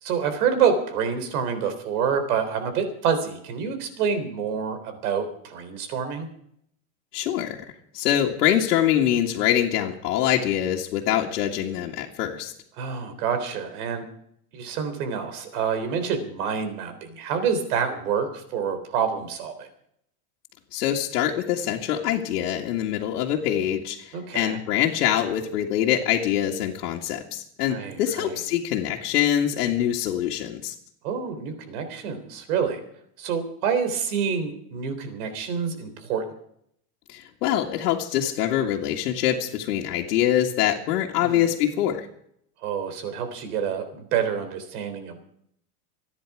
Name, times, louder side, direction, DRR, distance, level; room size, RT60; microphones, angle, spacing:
voice 1, 0.0-6.3 12.8-14.1 14.5-19.7 24.1-24.6 27.7-28.3 31.0-32.8 33.2-36.2 41.2-41.5 42.6-45.2, right 7 dB, 70° right, 9 dB, 3.8 m, -27 dB
voice 2, 7.1-7.6 7.9-12.5 20.7-30.7 37.1-42.1, left 11 dB, 90° left, -3 dB, 2.1 m, -24 dB
27.0 x 10.0 x 4.8 m, 0.71 s
supercardioid pair, 170°, 46 cm